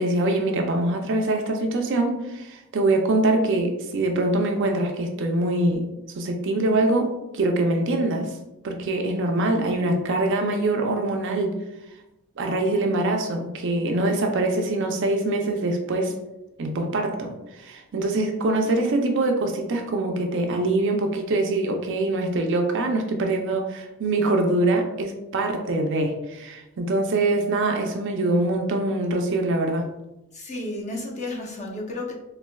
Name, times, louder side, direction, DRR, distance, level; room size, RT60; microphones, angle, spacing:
voice 1, 0.0-5.9 6.1-8.3 8.6-11.5 12.4-16.1 16.6-17.3 17.6-29.9, right 2 dB, 55° right, 3 dB, 0.5 m, -24 dB
voice 2, 30.3-32.1, left 2 dB, 30° left, -2 dB, 0.7 m, -32 dB
4.1 x 2.6 x 2.3 m, 0.93 s
head